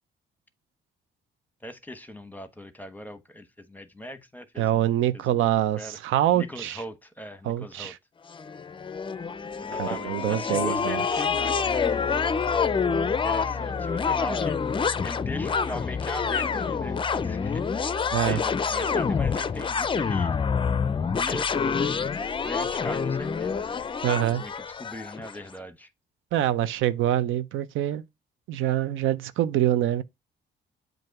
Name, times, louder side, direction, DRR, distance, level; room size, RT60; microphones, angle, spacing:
voice 1, 1.6-6.0 6.3-8.0 9.6-12.1 13.1-14.6 15.0-17.6 18.1-20.3 21.2-22.2 22.4-23.6 24.3-25.9, left 1 dB, 10° left, 1.0 m, -40 dB
voice 2, 4.6-6.8 7.4-8.0 9.8-11.0 18.1-18.4 24.0-24.4 26.3-28.0 28.5-30.0, right 12 dB, 90° right, 0.5 m, -25 dB
sound 1, 8.3-25.4, left 5 dB, 25° left, 0.5 m, -27 dB
7.7 x 2.6 x 5.7 m
cardioid pair, 90°, 20 cm